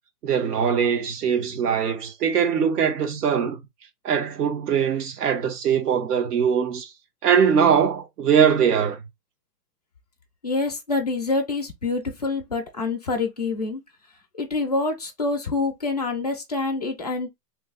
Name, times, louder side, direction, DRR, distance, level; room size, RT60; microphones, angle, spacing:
voice 1, 0.2-3.6 4.0-6.9 7.2-9.0, right 7 dB, 75° right, 1.3 m, -21 dB
voice 2, 10.4-13.8 14.4-17.3, left 3 dB, 30° left, 0.3 m, -26 dB
3.3 x 2.3 x 3.7 m
hypercardioid pair, 165°, 48 cm